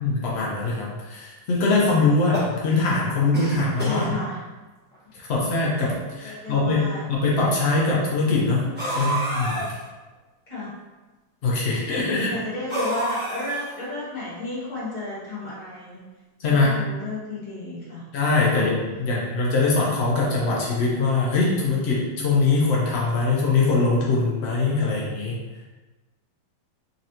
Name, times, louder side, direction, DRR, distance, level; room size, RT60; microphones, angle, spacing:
voice 1, 0.0-4.1 5.1-9.6 11.4-12.3 16.4-16.7 18.1-25.4, left 3 dB, 85° left, -4 dB, 0.5 m, -22 dB
sound 1, 2.1-2.9 3.3-4.1 4.9-5.0 5.2-5.3 6.3-6.4 8.8-9.8 12.7-13.8, right 1 dB, 10° right, 0.7 m, -29 dB
voice 2, 3.5-4.4 6.2-7.0 10.5-10.7 12.1-16.0 16.4-18.0 18.3-18.6, left 2 dB, 25° left, -10 dB, 1.4 m, -33 dB
3.9 x 3.2 x 2.8 m, 1.2 s
omnidirectional pair, 2.0 m